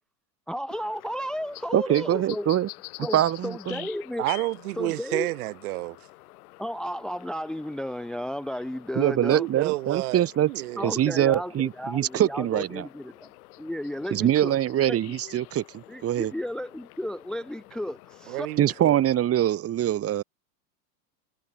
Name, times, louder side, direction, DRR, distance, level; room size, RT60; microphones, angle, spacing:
voice 1, 0.5-2.5 3.0-3.2 3.4-4.2 4.8-5.3 6.6-9.5 10.8-13.3 13.6-14.5 14.9-15.0 15.9-18.7, equal, ahead, 0.7 m, -33 dB
sound 1, 0.7-19.3, left 20 dB, 60° left, 4.2 m, -48 dB
voice 2, 1.7-2.7 3.0-3.9 8.9-10.5 10.8-12.9 14.1-16.3 18.6-20.2, right 12 dB, 30° right, 2.8 m, -24 dB
voice 3, 4.2-6.0 9.3-10.9 18.3-19.0, right 19 dB, 65° right, 4.6 m, -30 dB
hypercardioid pair, 120°, 48 cm